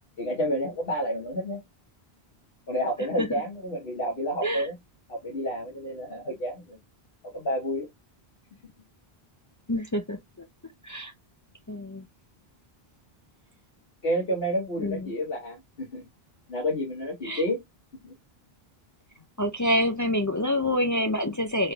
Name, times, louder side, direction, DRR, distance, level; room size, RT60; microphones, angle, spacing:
voice 1, 0.2-1.6 2.7-4.7 5.1-6.8 7.2-7.9 14.0-16.1 16.5-17.6 18.0-18.1, equal, 70° left, 1.5 m, -30 dB
voice 2, 9.7-10.2 10.8-11.1 11.7-12.1 14.8-15.1 17.2-17.4 19.4-21.7, left 1 dB, 30° left, 0.3 m, -27 dB
3.7 x 3.2 x 2.3 m
omnidirectional pair, 1.0 m